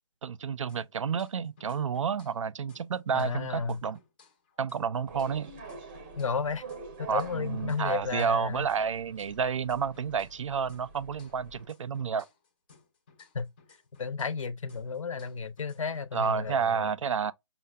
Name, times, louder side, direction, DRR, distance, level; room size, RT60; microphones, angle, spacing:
voice 1, 0.2-4.0 4.6-5.5 7.1-12.3 16.1-17.3, right 6 dB, 70° right, 0.4 m, -30 dB
sound 1, 0.7-2.4 2.7-6.4 6.7-10.4 10.7-14.4 14.7-16.7, left 4 dB, 20° left, 0.5 m, -60 dB
voice 2, 3.1-3.8 6.2-6.6 7.0-8.7 13.3-13.5 14.0-16.9, left 5 dB, 80° left, 0.7 m, -33 dB
sound 2, 5.1-11.7, right 4 dB, 20° right, 0.6 m, -47 dB
5.6 x 2.1 x 2.2 m
hypercardioid pair, 165°, 16 cm